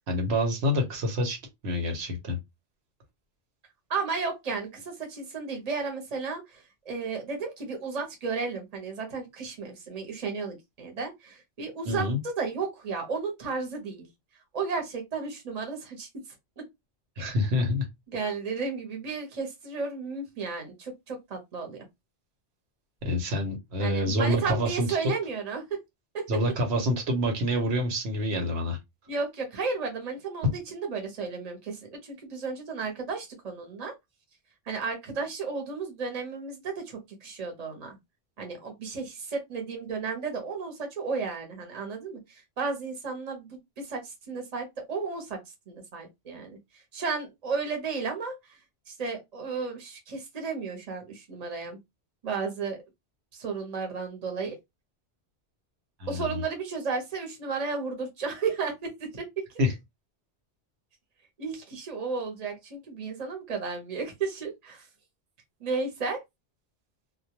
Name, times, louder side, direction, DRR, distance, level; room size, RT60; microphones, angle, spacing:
voice 1, 0.1-1.4 1.6-2.4 11.8-12.2 17.2-17.9 23.0-24.9 26.3-28.8 56.0-56.4 59.6-59.7, left 1 dB, 85° right, 1.0 m, -27 dB
voice 2, 3.9-14.1 14.5-16.1 18.1-21.9 23.8-25.6 26.1-26.2 29.1-33.9 34.7-38.0 38.4-45.4 45.7-46.6 46.9-48.6 48.9-51.8 52.2-52.8 53.3-54.5 56.1-59.5 61.4-64.9 65.6-66.2, right 4 dB, 40° right, 0.8 m, -33 dB
2.2 x 2.1 x 2.7 m
omnidirectional pair, 1.1 m